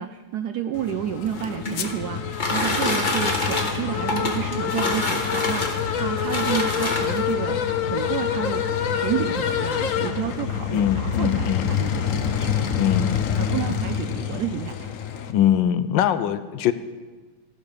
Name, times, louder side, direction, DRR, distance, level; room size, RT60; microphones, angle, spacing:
voice 1, 0.0-8.7 9.0-12.8 13.4-14.9, right 10 dB, 75° right, 9 dB, 0.9 m, -30 dB
sound 1, 0.7-15.3, left 8 dB, 55° left, 0.9 m, -26 dB
sound 2, 1.2-7.4 8.3-8.4 8.8-8.9 9.2-9.5, left 2 dB, 25° left, 1.4 m, -27 dB
voice 2, 10.7-11.7 12.7-13.2 15.3-16.7, left 10 dB, 75° left, 13 dB, 1.2 m, -22 dB
15.0 x 12.0 x 5.1 m, 1.3 s
omnidirectional pair, 2.2 m